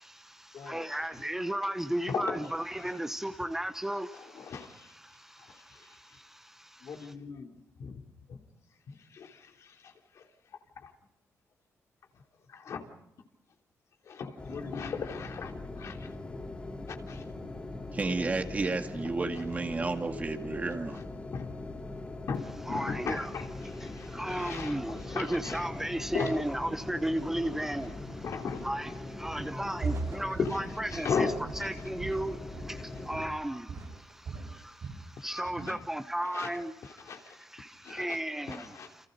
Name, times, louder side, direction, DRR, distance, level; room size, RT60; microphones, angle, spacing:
voice 1, 0.0-7.1 22.7-23.3 23.6-39.1, right 1 dB, 5° right, 1.0 m, -35 dB
voice 2, 0.5-0.9 2.1-2.4 4.1-4.9 5.5-5.9 6.8-7.5 7.8-8.0 8.3-8.4 8.9-10.2 10.8-10.9 12.5-12.9 14.0-16.1 16.9-17.3 20.9-21.0 21.3-21.6 22.3-25.7 26.1-26.4 28.2-28.7 30.4-30.6 30.9-31.4 35.7-35.8 36.3-36.5 37.1-37.4 37.8-38.2 38.5-38.9, left 5 dB, 65° left, 3.3 m, -37 dB
sound 1, 14.4-33.3, left 2 dB, 25° left, 4.0 m, -41 dB
voice 3, 17.9-21.0, right 3 dB, 30° right, 2.1 m, -32 dB
Walk footsteps, 29.3-29.6 29.8-32.9 33.1-33.4 33.7-35.1 35.4-35.8, right 4 dB, 60° right, 7.5 m, -39 dB
29.0 x 28.0 x 5.3 m
wide cardioid pair, 130°, 5 cm